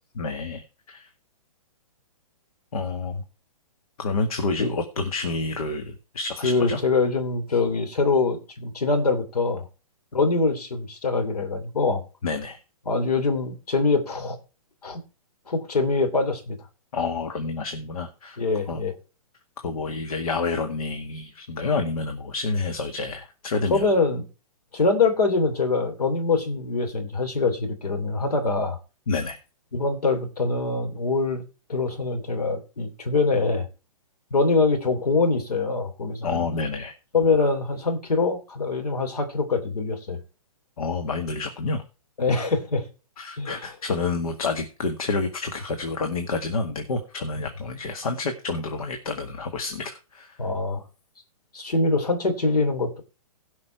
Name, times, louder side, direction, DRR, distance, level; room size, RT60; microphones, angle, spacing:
voice 1, 0.1-1.1 2.7-3.2 4.0-6.8 12.2-12.6 16.9-18.4 18.7-18.8 19.6-23.9 29.1-29.4 36.2-36.9 40.8-41.8 43.2-50.4, left 3 dB, 70° left, 1.9 m, -29 dB
voice 2, 6.4-9.6 10.1-12.0 12.9-14.4 14.8-15.0 15.5-16.6 18.4-18.9 23.7-24.2 24.7-28.8 29.7-31.4 31.7-33.7 34.3-36.6 37.1-40.2 42.2-42.9 43.4-43.5 50.4-50.8 51.5-53.0, left 3 dB, 85° left, 3.1 m, -24 dB
16.5 x 5.9 x 4.6 m
hypercardioid pair, 140°, 19 cm